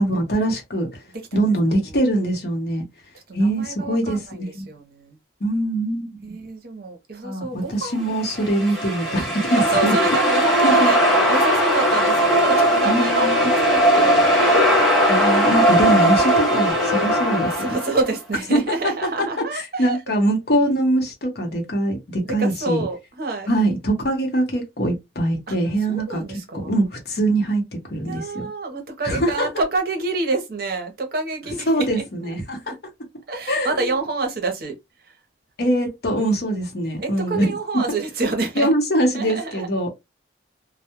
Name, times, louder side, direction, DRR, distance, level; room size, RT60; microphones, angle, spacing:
voice 1, 0.0-1.0 1.3-2.8 3.3-4.7 5.4-6.4 7.2-9.9 10.6-10.9 12.8-13.5 15.1-17.6 18.5-22.8 23.5-26.2 26.5-27.6 27.9-28.4 29.0-29.5 31.7-32.7 33.5-33.9 35.6-37.5 37.7-37.8 38.6-39.9, right 1 dB, 55° left, 0.8 m, -23 dB
voice 2, 1.1-1.5 1.8-2.0 3.3-5.2 6.2-8.5 8.8-11.0 11.3-14.3 17.3-20.0 22.3-23.5 25.5-25.6 25.9-26.7 28.0-32.3 32.7-32.8 33.3-34.7 35.0-35.2 37.0-38.7 39.1-39.7, right 3 dB, 55° right, 0.7 m, -28 dB
sound 1, 8.2-18.1, equal, ahead, 0.8 m, -18 dB
2.2 x 2.0 x 2.8 m
head